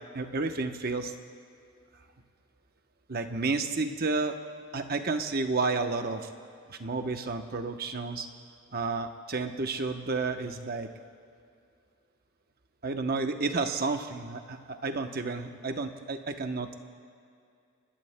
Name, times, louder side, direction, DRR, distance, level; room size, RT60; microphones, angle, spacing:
voice 1, 0.1-1.1 3.1-4.4 4.7-6.3 6.7-8.3 8.7-10.9 12.8-16.7, right 3 dB, 45° right, 6 dB, 0.8 m, -31 dB
27.0 x 20.0 x 2.2 m, 2.4 s
head